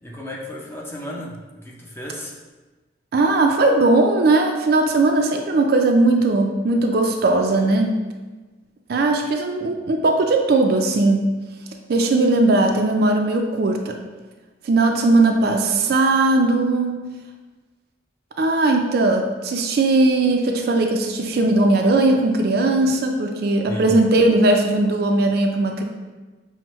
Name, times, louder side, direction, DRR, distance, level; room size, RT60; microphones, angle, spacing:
voice 1, 0.0-2.3 23.7-24.0, left 1 dB, 15° left, -2 dB, 0.5 m, -33 dB
voice 2, 3.1-8.0 8.9-11.4 11.9-14.0 14.6-17.0 18.4-25.8, right 2 dB, 55° right, 3 dB, 0.3 m, -18 dB
5.9 x 2.1 x 3.0 m, 1.2 s
head